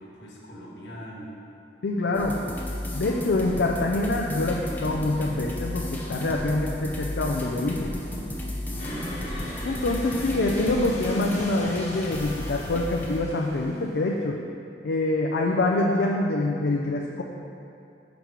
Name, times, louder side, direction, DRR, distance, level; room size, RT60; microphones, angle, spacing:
voice 1, 0.0-1.4 3.8-3.9 8.6-9.1, equal, 85° left, -5 dB, 1.5 m, -41 dB
voice 2, 1.8-2.4 2.9-7.9 9.6-14.4 14.8-17.2, left 2 dB, 70° left, 0 dB, 0.4 m, -25 dB
sound 1, 2.1-13.2, left 1 dB, 10° left, 0.6 m, -33 dB
sound 2, 8.8-14.3, left 1 dB, 40° left, 1.3 m, -40 dB
5.7 x 5.3 x 4.7 m, 2.6 s
head